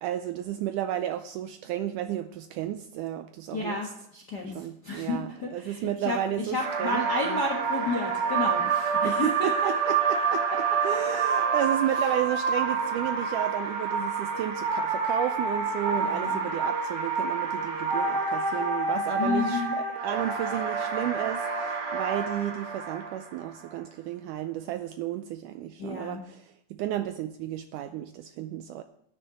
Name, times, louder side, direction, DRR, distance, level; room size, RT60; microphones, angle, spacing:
voice 1, 0.0-3.8 4.6-7.4 9.0-10.4 10.8-19.6 20.0-28.8, right 12 dB, 80° right, 9 dB, 1.8 m, -32 dB
voice 2, 3.5-6.2 6.4-9.9 12.0-12.1 16.0-16.5 19.2-19.8 25.8-26.2, left 3 dB, 55° left, 1 dB, 1.1 m, -32 dB
sound 1, 6.6-23.2 23.6-23.7, right 5 dB, 50° right, 2.1 m, -28 dB
10.5 x 6.5 x 9.1 m, 0.73 s
omnidirectional pair, 4.1 m